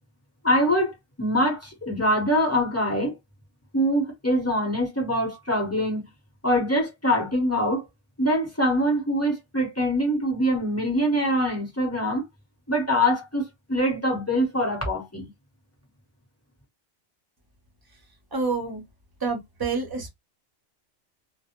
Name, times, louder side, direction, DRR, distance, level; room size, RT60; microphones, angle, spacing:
voice 1, 0.4-3.1 3.7-6.1 6.4-7.8 8.2-12.2 12.7-15.3, equal, 15° left, 0.7 m, -24 dB
voice 2, 18.3-18.8 19.2-20.1, right 4 dB, 25° right, 0.5 m, -28 dB
2.1 x 2.0 x 2.8 m
omnidirectional pair, 1.2 m